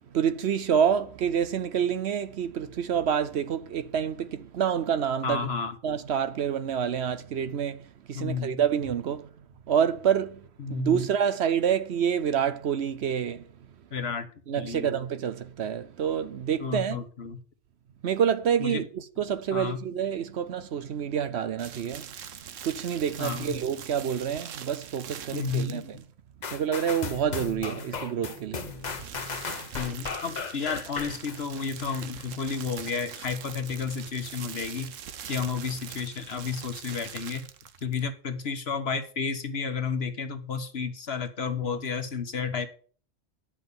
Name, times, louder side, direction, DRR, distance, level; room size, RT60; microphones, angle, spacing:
voice 1, 0.1-5.5 5.8-9.3 9.7-10.4 10.7-13.5 14.5-17.0 18.0-22.1 22.6-26.0 26.5-28.7, right 8 dB, 65° right, 0.9 m, -27 dB
voice 2, 5.2-5.7 8.1-8.6 10.6-11.0 13.9-14.9 16.6-17.4 18.6-18.8 19.5-19.8 23.2-23.6 25.3-25.9 29.7-34.9 35.3-37.4 37.8-42.7, left 5 dB, 55° left, 1.4 m, -32 dB
sound 1, 21.6-26.1 28.5-38.1, right 8 dB, 85° right, 1.2 m, -43 dB
sound 2, 26.4-32.3 32.8-32.9, left 5 dB, 40° left, 1.1 m, -36 dB
10.5 x 5.7 x 6.8 m
omnidirectional pair, 1.3 m